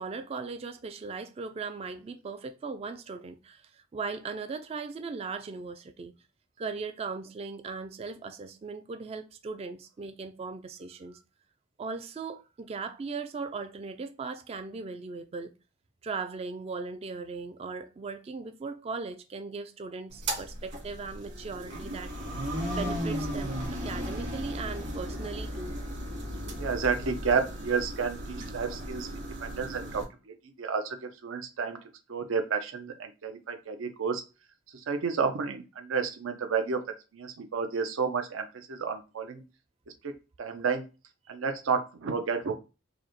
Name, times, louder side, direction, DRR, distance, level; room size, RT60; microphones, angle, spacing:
voice 1, 0.0-6.1 6.6-11.2 11.8-15.5 16.0-22.1 22.7-25.8, right 4 dB, 30° right, 0.3 m, -38 dB
sound 1, 20.1-30.0, equal, 60° right, 2.2 m, -35 dB
voice 2, 26.6-31.8 32.1-34.2 34.7-36.8 37.1-39.4 40.0-40.9 41.3-42.6, right 5 dB, 80° right, 0.5 m, -31 dB
4.8 x 2.1 x 2.9 m
head